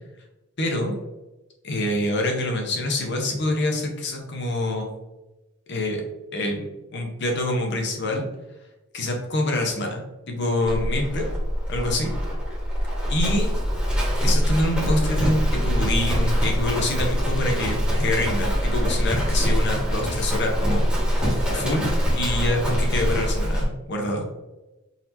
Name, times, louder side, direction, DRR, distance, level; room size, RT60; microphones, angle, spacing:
voice 1, 0.6-0.9 1.6-4.9 5.7-6.0 6.3-6.6 6.9-8.3 8.9-11.2 11.7-12.1 13.1-13.5 14.2-21.8 22.1-24.2, left 1 dB, 55° left, 1 dB, 0.8 m, -26 dB
Livestock farm animals working animals, 10.6-23.7, equal, 5° right, 1.3 m, -23 dB
4.1 x 2.9 x 2.7 m, 1.1 s
head